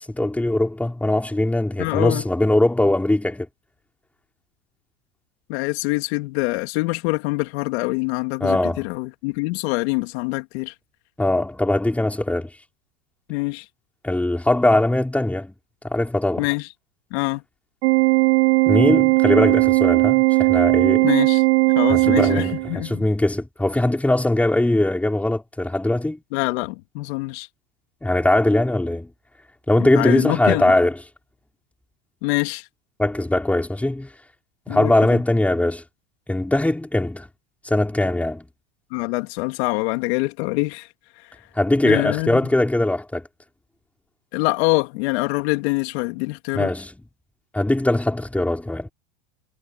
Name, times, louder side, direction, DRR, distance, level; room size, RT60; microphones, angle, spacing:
voice 1, 0.1-3.5 8.4-8.9 11.2-12.5 14.0-15.5 15.8-16.5 18.7-21.1 21.9-26.2 28.0-29.1 29.7-30.9 33.0-34.1 34.7-35.8 36.3-37.3 37.6-38.4 41.6-43.2 46.5-47.0 47.5-48.9, left 1 dB, 5° left, 4.6 m, -21 dB
voice 2, 1.8-2.2 5.5-10.7 13.3-13.7 16.4-16.7 17.1-17.4 21.0-21.4 21.7-23.0 26.3-27.5 29.8-30.6 32.2-32.7 34.7-35.2 38.9-40.9 41.8-42.4 44.3-46.7, left 24 dB, 60° left, 3.0 m, -25 dB
Organ, 17.8-22.9, right 25 dB, 65° right, 4.7 m, -17 dB
supercardioid pair, 145°, 36 cm